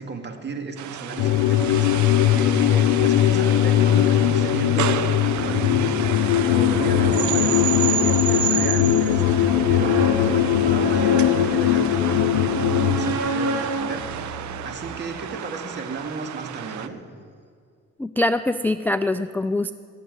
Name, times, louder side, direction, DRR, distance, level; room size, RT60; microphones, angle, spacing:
voice 1, 0.0-6.1 6.5-14.3 14.6-17.0, right 3 dB, 35° right, 5 dB, 1.8 m, -33 dB
sound 1, 0.8-16.9, right 10 dB, 70° right, 0.7 m, -30 dB
sound 2, 1.2-13.1, left 12 dB, 90° left, 0.6 m, -20 dB
sound 3, 5.3-15.2, right 1 dB, 55° right, 1.7 m, -32 dB
voice 2, 18.0-19.7, left 2 dB, 5° left, 10 dB, 0.3 m, -23 dB
17.0 x 7.3 x 9.5 m, 2.2 s
cardioid pair, 90°, 30 cm